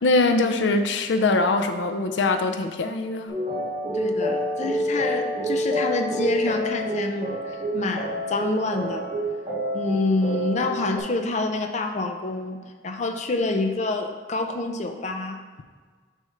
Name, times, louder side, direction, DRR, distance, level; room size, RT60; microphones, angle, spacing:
voice 1, 0.0-3.3, left 2 dB, 90° left, 7 dB, 0.5 m, -22 dB
sound 1, 3.3-11.0, equal, 30° right, 1.8 m, -28 dB
voice 2, 3.9-9.1 9.7-12.6 12.8-15.4, left 2 dB, 40° left, 4 dB, 0.5 m, -27 dB
6.1 x 3.6 x 5.6 m, 1.5 s
head